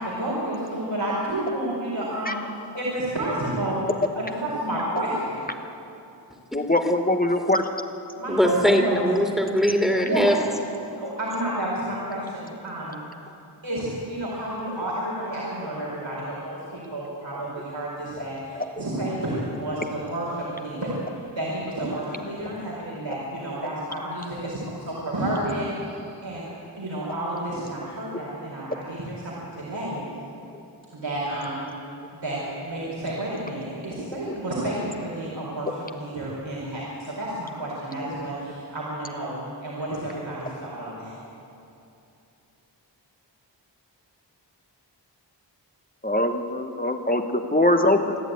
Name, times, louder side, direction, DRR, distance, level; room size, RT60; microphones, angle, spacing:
voice 1, 0.0-2.4 2.7-3.8 4.1-5.4 8.2-9.0 10.0-10.3 10.9-13.0 13.6-21.0 21.3-25.9 26.2-30.0 30.9-31.6 32.2-35.7 35.9-41.1, right 1 dB, 80° right, -6 dB, 4.7 m, -30 dB
voice 2, 6.5-7.7 18.5-18.7 34.3-34.4 46.0-48.2, left 1 dB, 20° left, 5 dB, 1.2 m, -22 dB
voice 3, 8.3-10.3, equal, ahead, 2 dB, 2.4 m, -20 dB
27.0 x 11.0 x 9.2 m, 2.8 s
wide cardioid pair, 55°, 44 cm